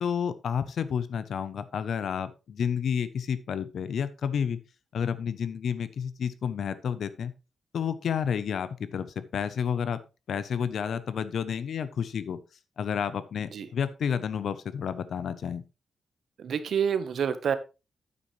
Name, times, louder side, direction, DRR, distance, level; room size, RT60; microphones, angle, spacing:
voice 1, 0.0-4.6 4.9-7.3 7.7-10.0 10.3-12.4 12.8-15.6, left 7 dB, 70° left, 14 dB, 0.6 m, -30 dB
voice 2, 16.4-17.6, right 7 dB, 65° right, 12 dB, 1.0 m, -28 dB
9.4 x 8.6 x 3.1 m, 0.29 s
wide cardioid pair, 165°, 0 cm